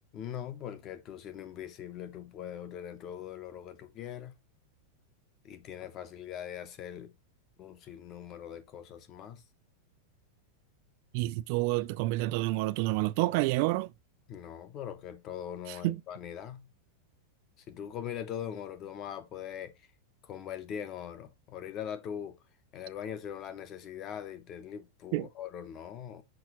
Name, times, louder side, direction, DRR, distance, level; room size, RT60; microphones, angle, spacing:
voice 1, 0.1-4.4 5.4-7.1 7.6-9.4 14.3-16.7 17.7-19.7 20.2-22.4 22.7-26.2, left 9 dB, 25° left, 0.8 m, -41 dB
voice 2, 11.1-13.9 15.8-16.0 25.1-25.3, right 19 dB, 40° right, 0.4 m, -28 dB
6.1 x 5.9 x 3.0 m
supercardioid pair, 175°, 0 cm